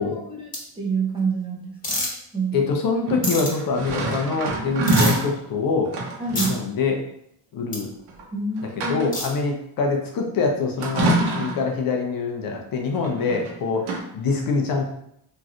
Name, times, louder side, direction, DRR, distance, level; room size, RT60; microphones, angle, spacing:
voice 1, 0.0-2.1 2.3-2.6 6.2-6.5 8.3-9.1, right 4 dB, 10° right, -4 dB, 0.5 m, -28 dB
sound 1, 0.5-0.6 1.8-2.1 3.2-3.5 4.9-5.2 6.3-6.5 7.7-7.8 9.1-9.3, left 1 dB, 20° left, 1.1 m, -26 dB
voice 2, 2.5-5.9 6.3-7.0 7.5-7.9 8.9-14.8, left 4 dB, 50° left, 2 dB, 0.6 m, -24 dB
sound 2, 3.0-5.3 5.9-6.6 8.1-8.2 8.6-9.3 10.8-11.7 12.9-13.5 13.8-14.0, right 2 dB, 60° right, 0.8 m, -25 dB
3.0 x 2.6 x 2.4 m, 0.74 s
cardioid pair, 115°, 44 cm